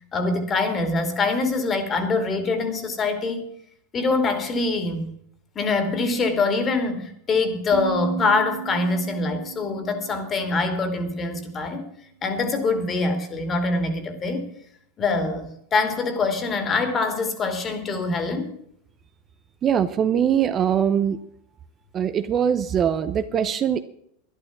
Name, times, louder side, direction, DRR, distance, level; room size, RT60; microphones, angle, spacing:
voice 1, 0.1-3.4 3.9-5.1 5.5-11.9 12.2-14.5 15.0-18.5, left 3 dB, 25° left, 8 dB, 2.8 m, -24 dB
sound 1, 7.7-11.6, right 11 dB, 65° right, 1.4 m, -36 dB
voice 2, 19.6-21.2 21.9-23.8, right 8 dB, 30° right, 10 dB, 0.8 m, -22 dB
12.0 x 11.0 x 6.0 m, 0.70 s
supercardioid pair, 125°, 0 cm